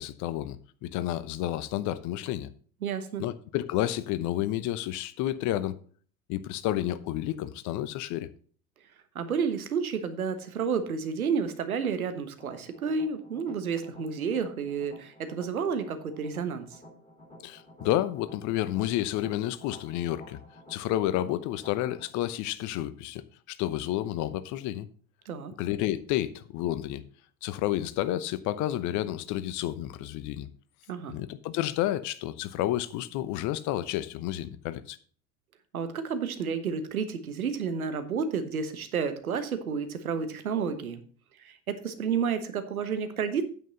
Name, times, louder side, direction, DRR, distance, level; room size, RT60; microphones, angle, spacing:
voice 1, 0.0-2.5 3.2-5.8 6.3-8.3 17.4-20.4 20.7-23.2 23.5-24.9 25.6-27.0 27.4-30.5 31.1-35.0, left 13 dB, 45° left, 0.9 m, -30 dB
voice 2, 2.8-3.2 9.1-16.8 25.2-25.5 30.9-31.2 35.7-41.0 41.4-43.4, right 6 dB, 80° right, 1.3 m, -31 dB
sound 1, 12.4-22.0, left 1 dB, 15° left, 4.3 m, -52 dB
9.2 x 7.9 x 3.9 m
figure-of-eight pair, 75°, 42 cm